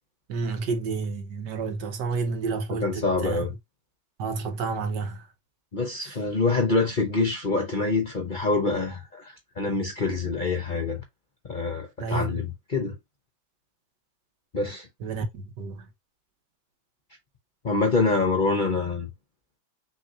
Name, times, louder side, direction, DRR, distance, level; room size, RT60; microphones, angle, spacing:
voice 1, 0.3-3.4 4.2-5.2 12.0-12.4 15.0-15.9, right 4 dB, 75° right, 1.6 m, -30 dB
voice 2, 2.7-3.5 5.7-11.0 11.5-13.0 14.5-14.9 17.6-19.1, left 3 dB, 40° left, 0.8 m, -26 dB
6.2 x 3.3 x 2.6 m
omnidirectional pair, 1.9 m